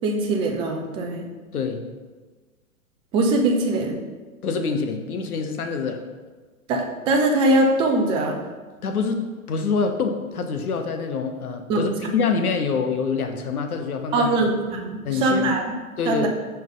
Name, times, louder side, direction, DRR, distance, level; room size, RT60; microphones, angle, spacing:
voice 1, 0.0-1.3 3.1-4.0 6.7-8.4 11.7-11.9 14.1-15.7 16.1-16.3, right 2 dB, 15° right, 2 dB, 0.4 m, -21 dB
voice 2, 1.5-1.9 4.4-6.0 8.8-14.5 15.0-15.6 16.0-16.3, left 5 dB, 80° left, 5 dB, 0.9 m, -26 dB
5.4 x 5.2 x 3.9 m, 1.3 s
hypercardioid pair, 110°, 44 cm